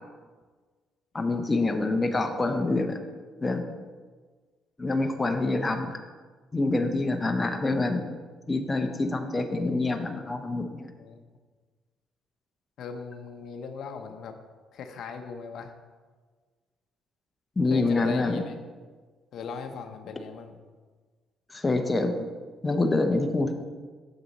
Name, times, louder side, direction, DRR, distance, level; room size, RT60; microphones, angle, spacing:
voice 1, 1.1-3.0 3.4-3.7 4.8-6.0 6.5-8.1 8.5-10.9 17.6-18.4 21.5-22.3 22.6-23.5, left 2 dB, 20° left, 4 dB, 0.7 m, -26 dB
voice 2, 12.8-14.3 14.7-15.7 17.7-18.6 19.3-20.5, left 5 dB, 65° left, 6 dB, 0.7 m, -38 dB
7.2 x 6.7 x 4.0 m, 1.4 s
cardioid pair, 100°, 0 cm